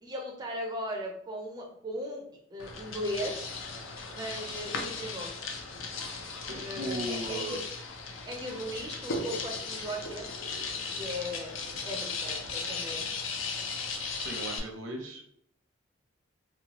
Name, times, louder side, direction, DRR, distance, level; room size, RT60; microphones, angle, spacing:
voice 1, 0.0-2.2 2.5-3.5 4.1-5.5 6.5-7.6 8.3-10.3 10.9-11.6 11.8-13.1, equal, 20° right, 0 dB, 0.4 m, -37 dB
sound 1, 2.6-14.6, left 4 dB, 85° left, 0.5 m, -37 dB
voice 2, 6.5-7.6 14.2-15.2, right 1 dB, 80° right, 1 dB, 0.7 m, -37 dB
2.9 x 2.2 x 2.9 m, 0.67 s
head